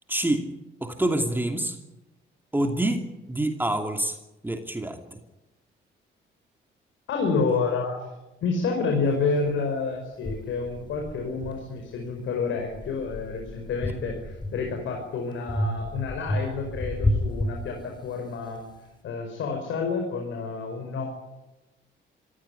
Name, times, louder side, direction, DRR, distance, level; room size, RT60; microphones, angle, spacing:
voice 1, 0.1-0.5 0.8-1.8 2.5-3.0 3.3-4.2 4.4-5.2, right 1 dB, 10° right, 4 dB, 2.7 m, -26 dB
voice 2, 7.1-8.0 8.4-18.6 19.0-21.0, left 4 dB, 75° left, 2 dB, 5.3 m, -29 dB
sound 1, 9.4-9.5 10.2-12.1 12.6-14.9 15.5-18.3, left 1 dB, 20° left, 4.1 m, -31 dB
25.0 x 16.0 x 9.8 m, 1.0 s
cardioid pair, 90°, 20 cm